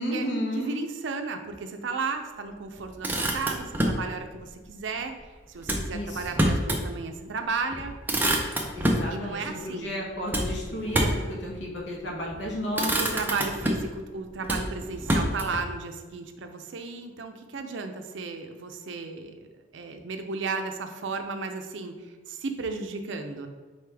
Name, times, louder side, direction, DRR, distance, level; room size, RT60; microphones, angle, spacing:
voice 1, 0.0-0.8 5.9-6.5 8.7-13.1, equal, 70° left, -2 dB, 1.1 m, -33 dB
voice 2, 0.6-5.1 5.5-8.0 9.1-9.9 13.0-23.5, right 4 dB, 75° right, 6 dB, 0.5 m, -34 dB
Motor vehicle (road), 2.8-4.1 5.6-6.9 7.3-7.4 7.7-9.1 10.3-11.3 12.1-12.4 12.7-14.0 14.4-15.7, right 1 dB, 10° right, 0.4 m, -27 dB
4.3 x 3.3 x 3.4 m, 1.3 s
head